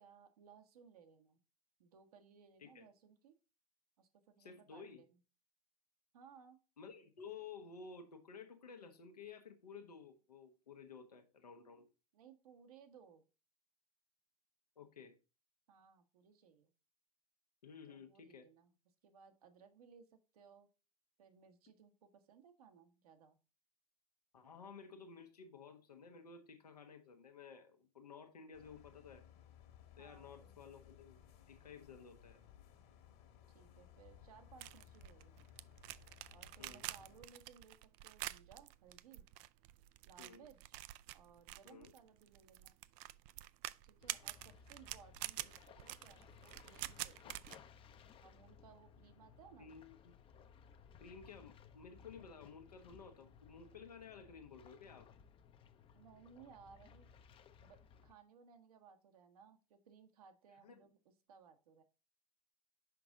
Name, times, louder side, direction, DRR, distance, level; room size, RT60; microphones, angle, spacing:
voice 1, 0.0-1.4 1.8-3.3 4.0-5.2 6.1-6.6 12.1-13.2 15.7-16.7 17.9-18.7 19.0-20.7 21.2-23.4 30.0-30.8 33.5-35.4 36.3-39.2 40.1-40.9 41.1-42.8 43.8-47.4 48.2-49.7 55.9-57.1 57.6-61.8, right 6 dB, 70° right, 1.2 m, -62 dB
voice 2, 4.4-5.0 6.8-11.9 14.8-15.2 17.6-18.5 24.3-29.2 30.0-31.2 31.5-32.4 36.6-36.9 40.2-40.4 41.6-41.9 45.4-45.5 47.2-47.3 49.6-50.1 51.0-55.1 60.6-60.9, left 5 dB, 85° left, 1.1 m, -54 dB
sound 1, 28.5-37.2, left 10 dB, 50° left, 1.5 m, -61 dB
sound 2, 34.6-47.6, right 17 dB, 45° right, 0.4 m, -48 dB
sound 3, 44.0-58.1, left 7 dB, 30° left, 0.6 m, -61 dB
5.9 x 5.1 x 3.7 m
hypercardioid pair, 90°, 20 cm